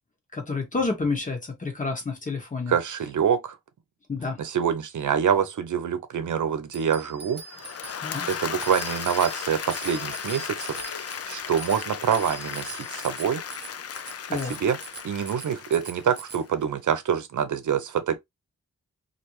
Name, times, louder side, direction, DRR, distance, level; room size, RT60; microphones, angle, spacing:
voice 1, 0.3-2.7 4.1-4.4 8.0-8.3 14.3-14.6, left 4 dB, 25° left, 1.0 m, -29 dB
voice 2, 2.7-3.6 4.4-7.4 8.3-10.8 11.2-13.4 14.4-14.8 15.0-18.2, right 8 dB, 80° right, 0.7 m, -26 dB
Bicycle bell, 6.7-16.4, right 4 dB, 35° right, 0.5 m, -42 dB
Applause / Crowd, 7.4-16.6, left 7 dB, 55° left, 0.4 m, -36 dB
3.3 x 2.6 x 3.0 m
wide cardioid pair, 175°, 30 cm